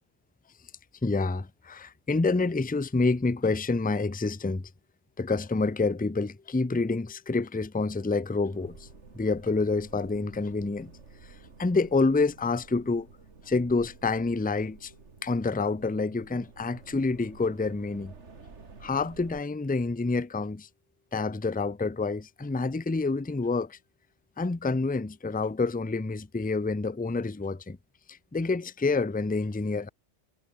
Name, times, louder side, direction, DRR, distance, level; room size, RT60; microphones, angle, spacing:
voice 1, 1.0-4.7 5.2-8.9 9.1-10.9 11.2-13.1 13.4-14.9 15.2-18.1 18.8-20.7 21.1-23.8 24.4-27.8 28.1-29.9, left 3 dB, 10° left, 0.5 m, -28 dB
sound 1, 8.5-19.4, right 4 dB, 70° right, 2.7 m, -51 dB
omnidirectional pair, 1.2 m